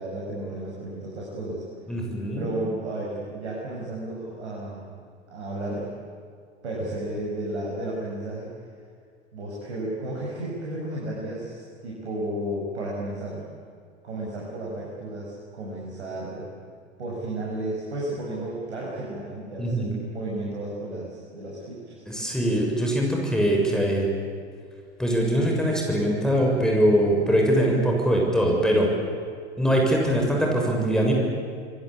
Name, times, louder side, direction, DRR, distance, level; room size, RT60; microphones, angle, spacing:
voice 1, 0.0-1.6 2.3-4.9 5.3-5.9 6.6-8.5 9.3-13.4 14.0-16.4 17.0-22.0, right 1 dB, 70° right, -4 dB, 6.8 m, -33 dB
voice 2, 1.9-2.5 19.6-19.9 22.1-24.1 25.0-28.9 29.6-31.1, equal, ahead, -1 dB, 6.8 m, -22 dB
28.0 x 22.0 x 8.6 m, 2.2 s
figure-of-eight pair, 85°, 34 cm